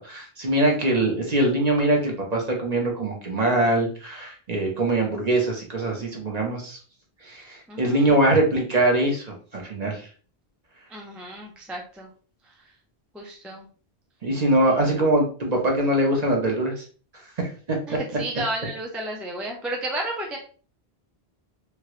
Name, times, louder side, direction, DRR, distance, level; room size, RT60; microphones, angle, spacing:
voice 1, 0.0-6.8 7.2-10.0 14.2-16.8 17.7-18.0, right 1 dB, 45° right, 0 dB, 0.8 m, -23 dB
voice 2, 7.7-8.2 10.9-12.1 12.4-12.5 13.1-13.7 14.6-15.0 17.9-20.4, right 1 dB, ahead, 0 dB, 0.4 m, -33 dB
3.1 x 2.4 x 2.9 m, 0.41 s
omnidirectional pair, 1.0 m